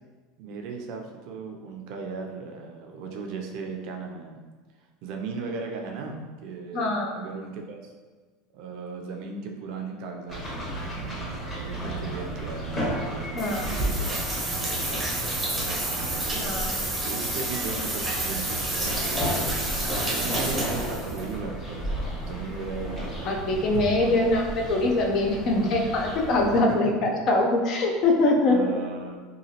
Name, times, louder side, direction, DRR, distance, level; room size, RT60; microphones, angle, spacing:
voice 1, 0.4-4.4 5.0-7.9 8.5-16.5 17.0-23.3 24.0-24.1 26.5-27.3 28.4-29.2, right 4 dB, 65° right, 2 dB, 0.4 m, -37 dB
voice 2, 6.7-7.3 13.3-13.7 16.4-16.9 23.2-28.8, left 2 dB, 50° left, 1 dB, 0.5 m, -23 dB
sound 1, 10.3-26.6, equal, 20° left, 1.1 m, -34 dB
sound 2, 13.4-21.2, right 1 dB, 15° right, 0.6 m, -30 dB
2.9 x 2.4 x 2.8 m, 1.4 s
supercardioid pair, 120°, 0 cm